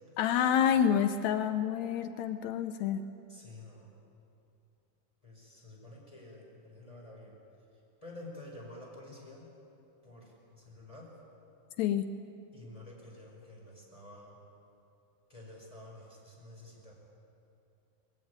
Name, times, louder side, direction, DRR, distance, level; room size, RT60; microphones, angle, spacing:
voice 1, 0.2-3.0 11.8-12.1, left 9 dB, 90° left, 10 dB, 1.6 m, -28 dB
voice 2, 3.3-3.9 5.2-7.4 8.0-9.5 10.0-11.1 12.5-14.4 15.3-16.9, left 1 dB, 10° left, -2 dB, 5.0 m, -50 dB
21.0 x 16.0 x 9.5 m, 2.7 s
omnidirectional pair, 4.0 m